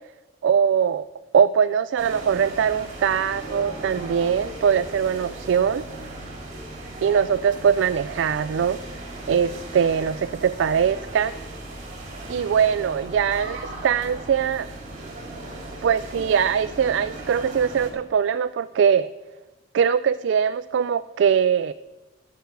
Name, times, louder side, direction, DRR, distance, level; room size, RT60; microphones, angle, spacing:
voice 1, 0.4-1.0 1.3-5.8 7.0-8.8 9.3-11.3 12.3-14.7 15.8-19.1 19.7-21.7, right 7 dB, 70° right, 14 dB, 0.3 m, -21 dB
sound 1, 2.0-17.9, right 1 dB, 40° right, 3.2 m, -37 dB
14.5 x 9.5 x 4.7 m, 1.1 s
head